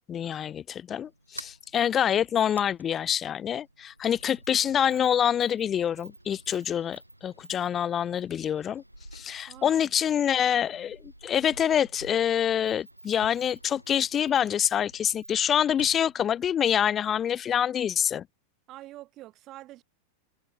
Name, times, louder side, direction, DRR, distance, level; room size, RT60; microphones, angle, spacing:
voice 1, 0.1-8.8 9.1-18.3, left 9 dB, 25° left, 2.9 m, -26 dB
Sliding door, 1.0-17.4, right 1 dB, 85° right, 7.1 m, -50 dB
voice 2, 9.5-9.9 18.7-19.8, right 16 dB, 35° right, 5.1 m, -46 dB
figure-of-eight pair, 90°, 0 cm